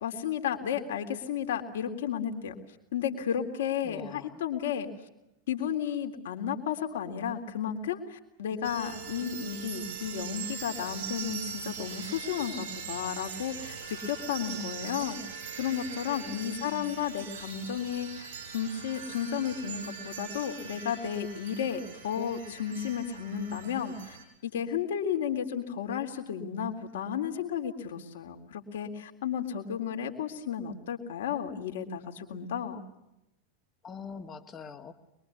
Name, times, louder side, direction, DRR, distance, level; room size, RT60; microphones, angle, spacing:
voice 1, 0.0-2.6 2.9-4.9 5.5-15.2 15.6-18.3 18.5-24.2 24.4-32.8, left 8 dB, 60° left, 4 dB, 3.4 m, -33 dB
voice 2, 3.8-4.4 16.2-17.0 33.8-34.9, left 6 dB, 20° left, 6 dB, 2.4 m, -44 dB
sound 1, 8.6-24.2, right 6 dB, 60° right, 7.5 m, -41 dB
25.0 x 23.0 x 8.5 m, 0.86 s
figure-of-eight pair, 90°, 0 cm